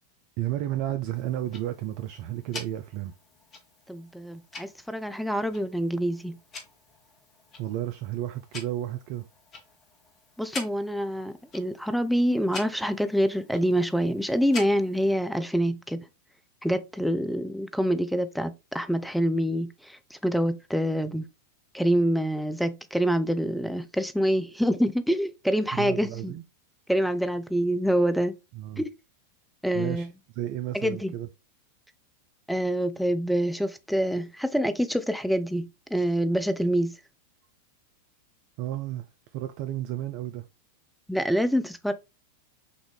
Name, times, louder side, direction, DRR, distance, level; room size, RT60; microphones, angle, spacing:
voice 1, 0.4-3.1 7.6-9.3 25.7-26.4 28.5-28.8 29.7-30.1 30.3-31.3 38.6-39.1 39.3-40.4, right 13 dB, 45° right, 0.4 m, -32 dB
Tick-tock, 1.1-15.1, left 3 dB, 30° left, 1.3 m, -45 dB
voice 2, 3.9-6.4 10.4-16.1 16.6-21.3 21.7-26.3 26.9-28.3 28.8-28.9 29.6-30.1 30.7-31.1 32.5-36.9 41.1-41.9, equal, ahead, 0.5 m, -26 dB
6.0 x 2.6 x 3.4 m
figure-of-eight pair, 90°, 0 cm